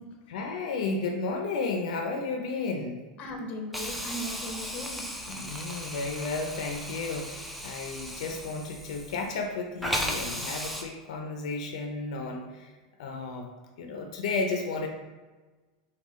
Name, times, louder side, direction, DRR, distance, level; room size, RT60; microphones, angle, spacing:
voice 1, 0.3-3.0 5.3-12.7 13.0-13.5 13.8-14.9, left 3 dB, 75° left, 3 dB, 0.5 m, -33 dB
voice 2, 3.2-5.1, equal, 35° left, 3 dB, 0.7 m, -38 dB
Hiss, 3.7-9.5 9.8-10.8, equal, ahead, 0.5 m, -36 dB
5.3 x 2.2 x 3.1 m, 1.3 s
supercardioid pair, 125°, 4 cm